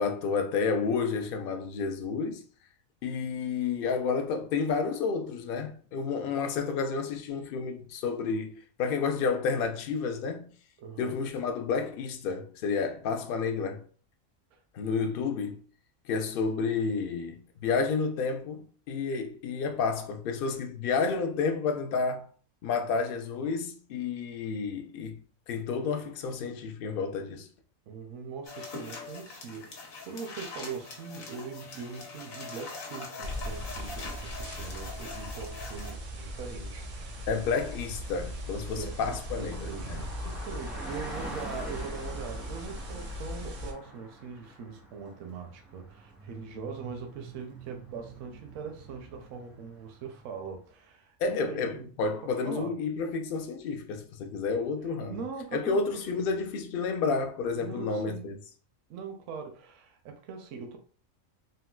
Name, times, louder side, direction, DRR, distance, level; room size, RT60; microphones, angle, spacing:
voice 1, 0.0-2.4 3.0-10.5 11.0-13.8 14.7-15.6 16.1-22.3 22.6-25.2 25.5-27.5 37.3-40.0 51.2-55.2 55.5-58.4, left 5 dB, 65° left, 0.5 m, -30 dB
voice 2, 10.8-11.1 14.5-14.6 27.9-29.8 30.0-37.3 38.7-39.0 39.4-51.9 52.2-52.7 55.1-56.2 57.6-58.3 58.9-60.8, right 5 dB, 70° right, 0.9 m, -41 dB
sound 1, 28.5-35.9, left 4 dB, 80° left, 1.2 m, -43 dB
sound 2, 33.2-43.7, equal, 55° right, 0.5 m, -39 dB
Car passing by, 34.4-50.5, right 2 dB, ahead, 0.5 m, -47 dB
3.7 x 2.2 x 2.2 m
omnidirectional pair, 1.4 m